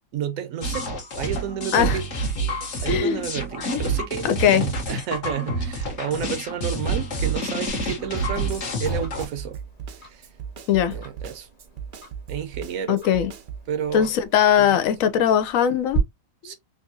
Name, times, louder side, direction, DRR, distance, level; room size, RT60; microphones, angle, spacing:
voice 1, 0.1-0.9 1.2-2.0 2.8-9.6 9.9-10.3 10.9-11.5 12.3-13.0 13.7-14.1 14.6-14.8 16.4-16.5, right 8 dB, 80° right, 1.1 m, -31 dB
sound 1, 0.6-9.3, right 2 dB, 60° left, 1.4 m, -28 dB
voice 2, 2.9-3.2 4.2-4.6 10.7-10.9 12.9-13.3 13.9-16.0 16.4-16.5, left 9 dB, 75° left, 1.0 m, -20 dB
Tick-tock, 7.7-16.0, right 5 dB, 40° left, 1.4 m, -40 dB
Snare drum, 8.2-13.7, right 7 dB, 65° right, 0.5 m, -37 dB
3.6 x 2.6 x 2.6 m
omnidirectional pair, 1.4 m